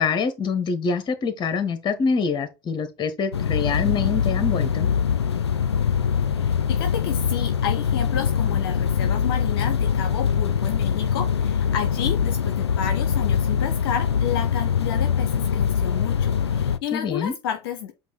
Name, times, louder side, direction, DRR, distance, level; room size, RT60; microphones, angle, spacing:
voice 1, 0.0-4.9 16.9-17.3, left 5 dB, 35° left, 1.4 m, -25 dB
sound 1, 3.3-16.8, left 7 dB, 80° left, 0.5 m, -23 dB
voice 2, 6.3-17.9, left 9 dB, 60° left, 0.8 m, -31 dB
8.0 x 2.7 x 4.5 m
figure-of-eight pair, 70°, 14 cm